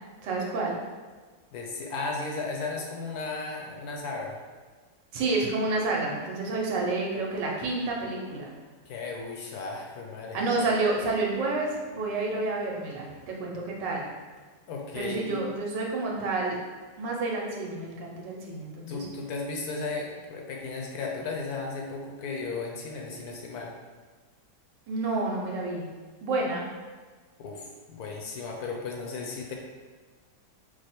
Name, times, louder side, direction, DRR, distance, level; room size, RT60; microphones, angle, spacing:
voice 1, 0.2-0.7 5.1-8.5 10.3-14.1 14.9-16.6 17.0-19.1 24.9-25.9 26.2-26.7, right 3 dB, 85° right, -2 dB, 1.5 m, -29 dB
voice 2, 1.5-4.4 8.9-10.5 14.7-15.4 18.8-23.7 27.4-29.5, left 3 dB, 70° left, 0 dB, 1.0 m, -35 dB
5.0 x 2.0 x 4.2 m, 1.4 s
omnidirectional pair, 1.9 m